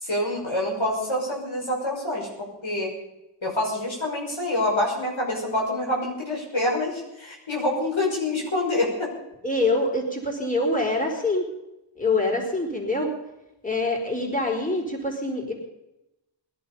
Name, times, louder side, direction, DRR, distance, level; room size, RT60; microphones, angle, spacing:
voice 1, 0.0-2.3 2.6-2.9 3.4-9.1, left 1 dB, 85° left, -1 dB, 5.7 m, -26 dB
voice 2, 9.4-11.5 12.0-13.1 13.6-15.5, left 2 dB, 15° left, 1 dB, 4.3 m, -25 dB
21.0 x 11.5 x 5.5 m, 0.93 s
wide cardioid pair, 50°, 46 cm